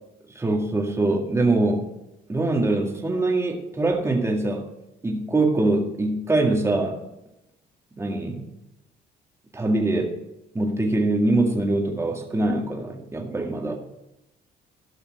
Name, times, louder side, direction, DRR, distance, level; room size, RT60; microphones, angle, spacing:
voice 1, 0.3-1.8 2.3-4.7 5.0-7.0 7.9-8.4 9.5-10.1 10.5-13.8, right 2 dB, 15° right, 1 dB, 2.0 m, -23 dB
13.0 x 5.7 x 6.5 m, 0.88 s
cardioid pair, 110°, 17 cm